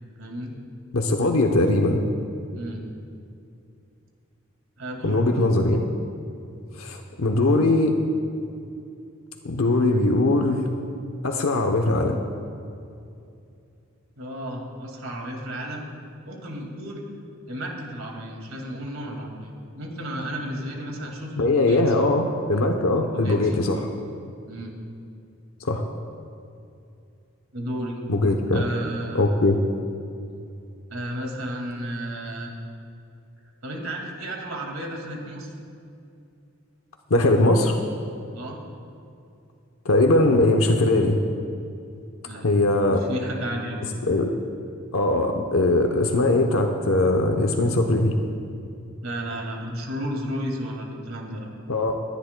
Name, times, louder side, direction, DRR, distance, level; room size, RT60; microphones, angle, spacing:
voice 1, 0.2-0.5 2.5-2.8 4.8-5.4 14.2-15.9 16.2-17.0 17.4-21.8 23.1-23.6 24.5-24.7 27.5-28.0 28.5-29.3 30.9-32.6 33.6-35.5 38.3-38.6 42.2-42.5 42.8-43.9 49.0-51.5, equal, 75° right, 0 dB, 2.1 m, -33 dB
voice 2, 0.9-2.0 5.0-5.9 6.8-7.9 9.4-10.7 11.2-12.2 21.4-23.9 25.6-25.8 28.1-28.6 29.1-29.6 37.1-37.7 39.8-41.2 42.4-43.0 44.0-44.3 44.9-48.2 51.7-51.9, left 2 dB, 85° left, 3 dB, 0.8 m, -20 dB
25.5 x 10.5 x 2.2 m, 2.5 s
head